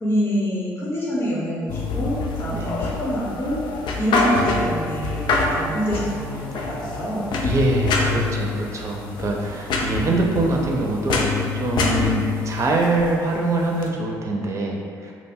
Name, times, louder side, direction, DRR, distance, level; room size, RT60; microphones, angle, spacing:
voice 1, 0.0-1.7 1.9-3.6 4.0-7.3, equal, 30° left, -7 dB, 0.7 m, -26 dB
sound 1, 1.7-13.9, left 3 dB, 65° left, 0.4 m, -26 dB
voice 2, 7.4-15.1, right 2 dB, 35° right, -1 dB, 0.5 m, -24 dB
2.4 x 2.1 x 3.4 m, 2.2 s
hypercardioid pair, 55°, 8 cm